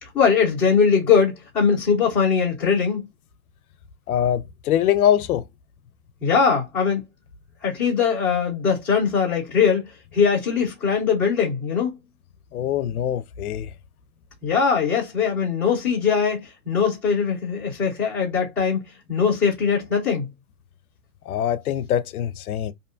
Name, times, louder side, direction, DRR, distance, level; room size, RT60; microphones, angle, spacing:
voice 1, 0.0-3.0 6.2-7.0 7.6-12.0 14.4-18.8 19.1-20.3, left 6 dB, 5° left, 0.7 m, -21 dB
voice 2, 4.1-5.4 12.5-13.7 21.3-22.7, left 10 dB, 85° left, 0.5 m, -23 dB
2.6 x 2.2 x 2.5 m
hypercardioid pair, 165°, 42 cm